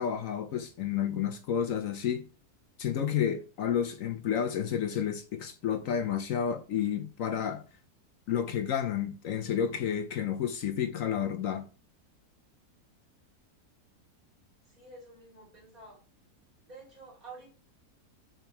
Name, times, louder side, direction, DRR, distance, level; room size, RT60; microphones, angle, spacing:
voice 1, 0.0-2.3 2.8-7.6 8.3-11.7, left 8 dB, 70° left, 0.9 m, -30 dB
voice 2, 14.6-16.0 16.7-17.5, right 3 dB, 60° right, 3.8 m, -50 dB
7.0 x 5.6 x 3.0 m
omnidirectional pair, 1.7 m